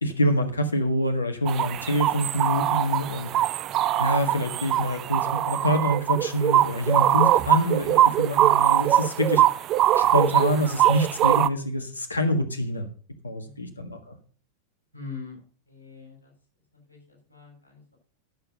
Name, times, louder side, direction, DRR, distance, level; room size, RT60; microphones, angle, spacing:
voice 1, 0.0-3.3 4.0-9.4 9.9-12.9 13.2-14.2, equal, 80° left, 7 dB, 1.5 m, -26 dB
sound 1, 1.5-11.5, right 12 dB, 35° right, 0.4 m, -22 dB
voice 2, 13.4-13.9 14.9-16.3 16.7-18.0, left 5 dB, 90° right, -1 dB, 6.4 m, -43 dB
11.5 x 6.8 x 5.3 m, 0.41 s
figure-of-eight pair, 90°, 0 cm